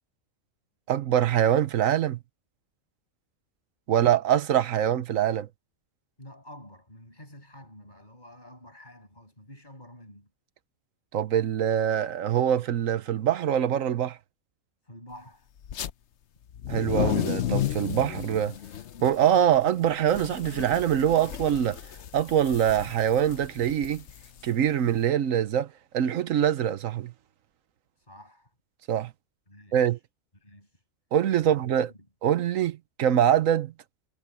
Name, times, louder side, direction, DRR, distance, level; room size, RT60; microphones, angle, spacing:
voice 1, 0.9-2.2 3.9-5.5 11.1-14.2 16.7-18.5 19.0-21.8 22.1-24.0 24.4-27.1 28.9-29.1 29.7-30.0 31.1-31.9 32.2-33.7, right 10 dB, 80° right, 1.2 m, -24 dB
voice 2, 6.2-10.3 14.8-15.5 28.0-28.5 29.5-30.0 30.4-30.8 31.4-31.7, left 1 dB, 35° left, 7.6 m, -49 dB
sound 1, 15.6-15.9 16.5-25.0, left 10 dB, 60° left, 1.0 m, -33 dB
omnidirectional pair, 1.4 m